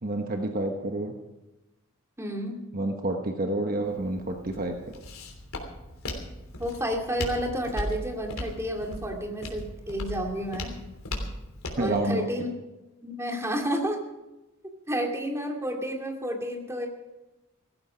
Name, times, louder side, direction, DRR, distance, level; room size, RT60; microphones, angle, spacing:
voice 1, 0.0-1.1 2.7-4.7 11.8-12.3, right 1 dB, 45° right, 3 dB, 1.2 m, -29 dB
voice 2, 2.2-2.6 6.5-10.7 11.8-12.5 13.0-14.0 14.9-16.9, equal, 15° right, 1 dB, 2.6 m, -30 dB
Walk footsteps, 3.8-11.9, left 1 dB, 90° left, 3.2 m, -37 dB
17.0 x 14.0 x 5.1 m, 1.0 s
head